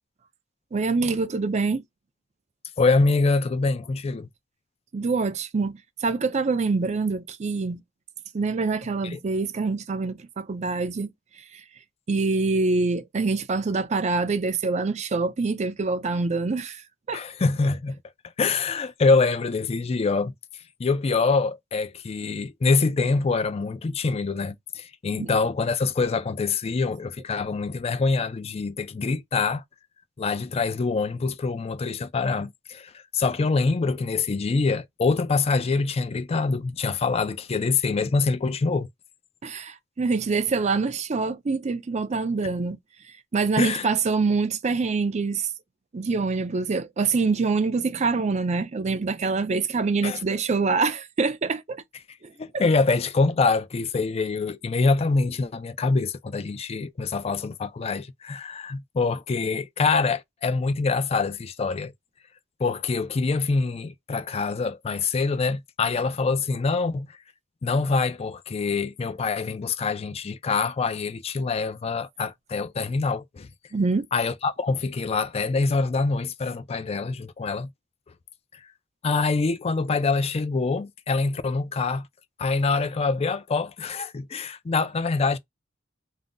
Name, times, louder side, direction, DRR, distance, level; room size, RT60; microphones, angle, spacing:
voice 1, 0.7-1.8 4.9-7.8 8.3-11.1 12.1-16.8 17.1-17.2 25.2-25.3 39.4-42.8 43.3-45.5 45.9-51.8 52.2-52.6 73.7-74.1, right 4 dB, 35° right, 0.4 m, -25 dB
voice 2, 2.8-4.3 9.0-9.2 17.1-18.0 18.4-20.3 20.8-29.6 30.2-38.9 43.6-43.9 50.0-50.2 52.4-61.9 62.6-67.1 67.6-73.5 74.1-77.7 79.0-82.1 82.4-85.4, left 4 dB, 30° left, 0.4 m, -25 dB
2.5 x 2.0 x 3.5 m
head